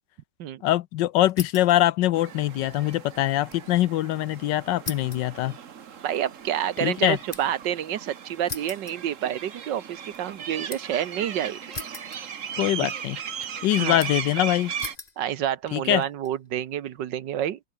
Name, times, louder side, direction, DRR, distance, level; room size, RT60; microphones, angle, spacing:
voice 1, 0.6-5.5 6.8-7.2 12.6-13.2 13.6-14.7 15.7-16.0, left 14 dB, 75° left, 1.2 m, -23 dB
sound 1, 1.3-1.8 2.2-3.7 4.0-4.1 4.8-7.7 8.5-9.6 10.0-11.0 11.7-12.6 12.9-13.5 14.0-14.4 14.8-15.2 15.9-16.3, left 3 dB, 25° left, 1.6 m, -40 dB
sound 2, 2.1-15.0, right 8 dB, 45° right, 1.4 m, -37 dB
voice 2, 6.0-11.6 12.8-12.9 13.8-14.0 15.2-17.6, right 10 dB, 70° right, 1.6 m, -28 dB
open air
omnidirectional pair, 2.0 m